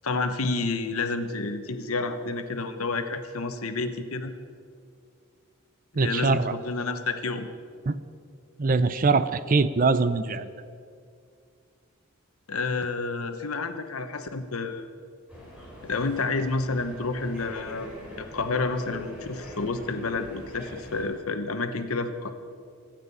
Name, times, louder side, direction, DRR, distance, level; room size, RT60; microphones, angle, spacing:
voice 1, 0.0-4.3 6.0-7.5 12.5-14.9 15.8-17.9 18.2-22.3, left 3 dB, 85° left, 8 dB, 1.1 m, -29 dB
voice 2, 5.9-6.5 7.9-8.0 8.6-10.5, right 4 dB, 40° right, 14 dB, 0.5 m, -23 dB
sound 1, 15.3-21.1, left 1 dB, 5° right, 3.9 m, -43 dB
25.5 x 9.0 x 5.5 m, 2.3 s
head